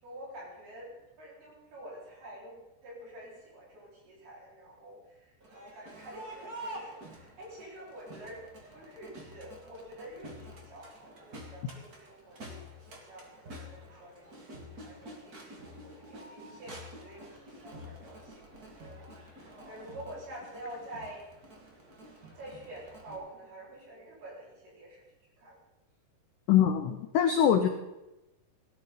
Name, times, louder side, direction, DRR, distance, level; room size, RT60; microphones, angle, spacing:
voice 1, 0.0-8.4 8.7-21.3 22.3-25.0 25.4-25.6, right 1 dB, 70° right, -5 dB, 6.6 m, -48 dB
Crowd, 5.4-23.2, equal, 35° right, 1.6 m, -48 dB
voice 2, 26.5-27.7, left 9 dB, 85° left, 7 dB, 1.8 m, -23 dB
17.0 x 13.0 x 3.9 m, 0.99 s
omnidirectional pair, 4.6 m